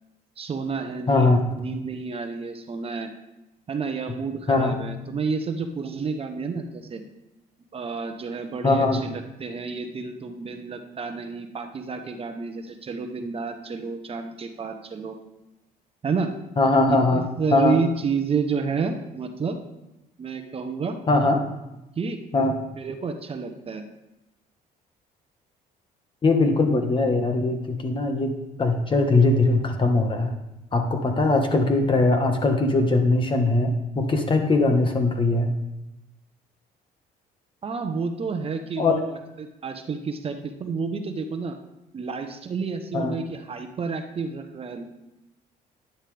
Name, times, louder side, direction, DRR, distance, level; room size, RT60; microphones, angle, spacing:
voice 1, 0.4-3.1 3.7-7.0 7.7-15.2 16.0-16.3 16.9-19.6 20.2-21.0 22.0-22.2 22.8-23.8 37.6-41.6 41.9-44.9, right 5 dB, 35° right, 6 dB, 0.9 m, -30 dB
voice 2, 1.1-1.6 4.5-4.8 8.6-9.0 16.6-17.2 17.5-17.8 21.1-21.4 22.3-22.6 26.2-28.3 28.6-30.3 30.7-35.5 38.8-39.0 42.9-43.2, left 2 dB, 30° left, 5 dB, 1.5 m, -21 dB
11.0 x 10.5 x 3.5 m, 0.93 s
cardioid pair, 110°, 17 cm